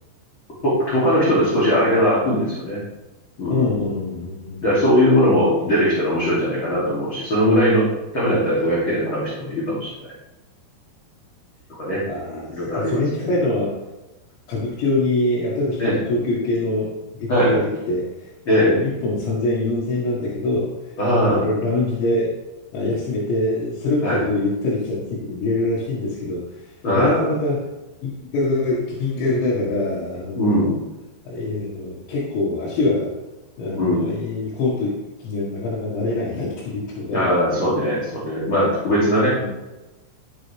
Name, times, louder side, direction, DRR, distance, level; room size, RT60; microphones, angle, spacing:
voice 1, 0.6-2.8 3.4-3.6 4.6-7.9 8.1-9.9 11.8-12.0 12.5-13.3 15.8-16.0 17.3-17.6 18.5-18.8 21.0-21.5 24.0-24.2 26.8-27.3 30.3-30.7 33.8-34.0 37.1-39.4, equal, 30° left, -8 dB, 3.1 m, -19 dB
voice 2, 3.5-4.6 12.1-13.8 14.5-16.9 17.2-18.3 18.6-20.9 21.2-22.3 22.7-26.4 26.9-27.7 28.0-30.7 31.3-33.1 33.6-34.9 35.2-37.3 39.4-39.5, left 2 dB, 85° left, -6 dB, 4.2 m, -24 dB
14.0 x 8.2 x 3.5 m, 1.0 s
omnidirectional pair, 5.0 m